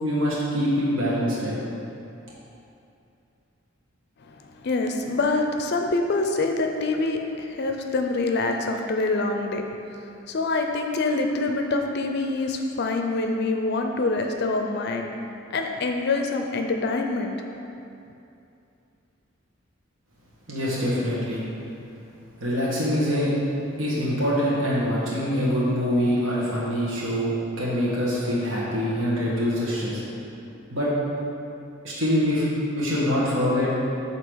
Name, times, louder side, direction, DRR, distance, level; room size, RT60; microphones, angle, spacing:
voice 1, 0.0-1.6 20.5-21.4 22.4-23.3 23.8-30.0 30.7-30.9 31.8-32.5 32.7-33.7, equal, 70° right, -7 dB, 1.3 m, -24 dB
voice 2, 4.3-9.6 10.3-15.1 15.5-17.3, left 3 dB, 50° left, 4 dB, 0.4 m, -25 dB
8.1 x 2.8 x 6.1 m, 2.7 s
head